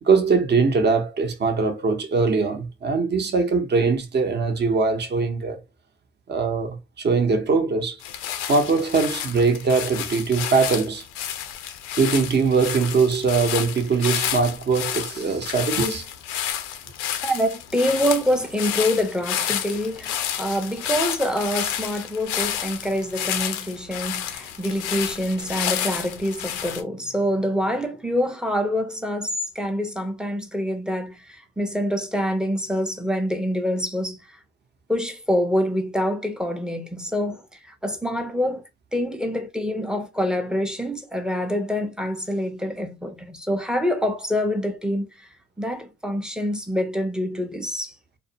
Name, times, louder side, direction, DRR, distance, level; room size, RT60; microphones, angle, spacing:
voice 1, 0.0-5.6 6.3-8.0 8.5-11.0 12.0-16.0, right 4 dB, 35° right, 0.8 m, -21 dB
sound 1, 8.0-26.8, left 10 dB, 90° left, 0.5 m, -30 dB
voice 2, 17.2-34.3 34.9-38.6 38.9-45.3 45.6-47.9, equal, ahead, 0.6 m, -26 dB
2.4 x 2.1 x 2.8 m
supercardioid pair, 70°, 31 cm